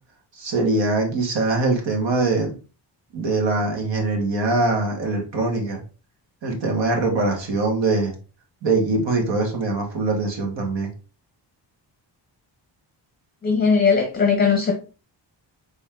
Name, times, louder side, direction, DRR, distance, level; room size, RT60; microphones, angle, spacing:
voice 1, 0.4-2.5 3.1-5.8 6.4-8.1 8.6-10.9, right 3 dB, 75° right, 1.7 m, -22 dB
voice 2, 13.4-14.7, left 5 dB, 20° left, 0.7 m, -18 dB
4.2 x 3.5 x 3.6 m
wide cardioid pair, 160°, 44 cm